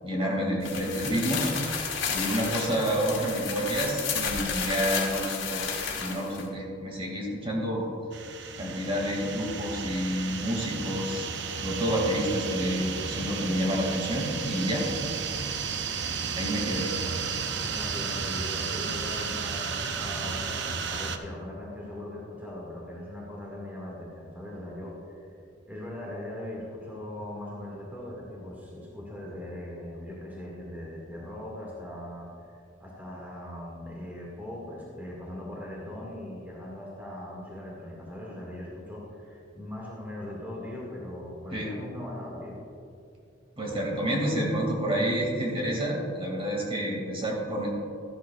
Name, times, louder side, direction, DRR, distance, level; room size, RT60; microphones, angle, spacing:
voice 1, 0.0-1.5 2.1-5.6 6.0-7.9 8.6-11.3 11.6-14.9 16.3-17.0 41.5-41.7 43.6-47.7, equal, 30° right, -2 dB, 2.3 m, -29 dB
sound 1, 0.6-6.4, left 6 dB, 85° left, 2.4 m, -32 dB
sound 2, 8.1-21.2, right 6 dB, 65° right, 0.7 m, -33 dB
voice 2, 17.7-25.3 25.6-32.5 32.8-42.6, left 1 dB, 10° right, -5 dB, 2.0 m, -40 dB
14.5 x 12.0 x 2.4 m, 2.5 s
head